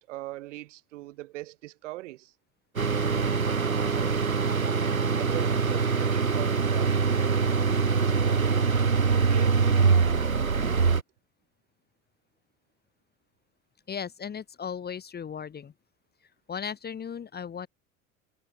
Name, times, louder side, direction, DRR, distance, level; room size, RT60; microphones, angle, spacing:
voice 1, 0.1-2.3 3.5-4.8 5.2-7.5 8.0-8.7 8.9-9.7, right 17 dB, 60° right, 5.4 m, -41 dB
sound 1, 2.8-11.0, right 5 dB, 90° right, 0.9 m, -24 dB
voice 2, 13.9-15.7 16.5-17.7, left 7 dB, 25° left, 2.2 m, -36 dB
figure-of-eight pair, 75°, 41 cm